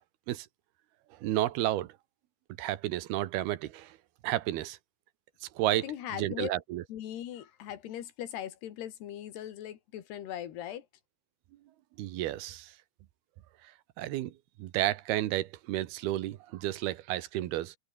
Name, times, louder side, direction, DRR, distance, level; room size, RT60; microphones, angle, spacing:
voice 1, 1.1-2.0 2.6-4.0 4.2-4.8 5.4-6.8 12.0-12.8 13.6-17.8, right 14 dB, 75° right, 3.0 m, -32 dB
voice 2, 5.8-6.5 6.9-10.9, left 11 dB, 85° left, 4.2 m, -39 dB
omnidirectional pair, 4.6 m